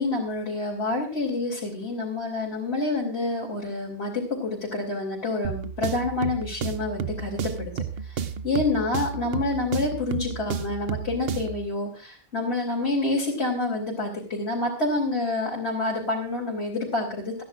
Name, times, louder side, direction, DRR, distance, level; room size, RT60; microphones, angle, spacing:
voice 1, 0.0-7.7 8.0-17.4, left 2 dB, 80° left, -3 dB, 3.3 m, -28 dB
sound 1, 5.4-11.7, right 7 dB, 65° right, 0.9 m, -32 dB
27.0 x 10.0 x 2.5 m, 0.38 s
omnidirectional pair, 1.1 m